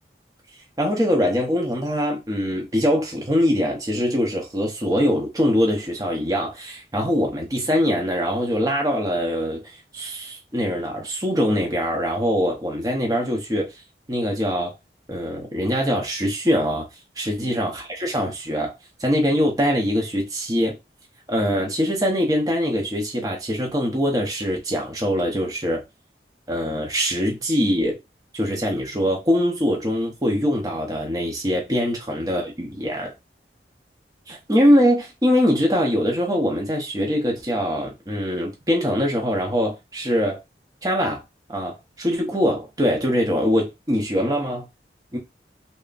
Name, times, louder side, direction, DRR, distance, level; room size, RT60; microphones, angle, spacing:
voice 1, 0.8-13.7 14.1-14.7 15.1-16.8 17.2-18.7 19.0-20.8 21.3-25.8 26.5-28.0 28.3-33.1 34.3-40.4 40.8-41.2 41.5-44.7 45.1-45.2, equal, 20° right, 0.7 m, -23 dB
3.3 x 2.1 x 3.9 m
head